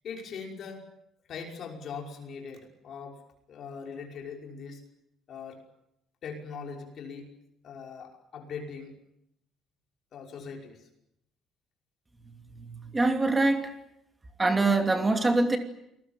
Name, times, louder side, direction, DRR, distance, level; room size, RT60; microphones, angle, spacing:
voice 1, 0.0-0.8 1.3-3.2 3.5-4.8 5.3-5.6 6.2-7.3 7.6-8.9 10.1-10.9, left 5 dB, 40° left, 2 dB, 5.7 m, -41 dB
voice 2, 12.5-13.7 14.4-15.6, right 2 dB, 10° right, 5 dB, 2.8 m, -24 dB
29.0 x 21.0 x 8.9 m, 0.80 s
cardioid pair, 175°, 0 cm